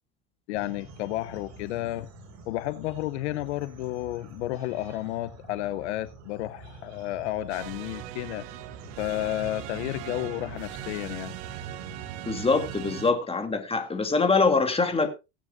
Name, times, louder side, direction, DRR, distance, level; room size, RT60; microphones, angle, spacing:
voice 1, 0.5-2.1 2.5-8.5 9.0-11.3, left 15 dB, 75° left, 0.7 m, -32 dB
sound 1, 0.6-12.9, right 3 dB, 50° right, 4.5 m, -47 dB
sound 2, 7.5-13.1, right 14 dB, 70° right, 1.1 m, -39 dB
voice 2, 12.3-15.1, left 4 dB, 15° left, 2.4 m, -24 dB
17.5 x 9.4 x 2.5 m
hypercardioid pair, 80°, 34 cm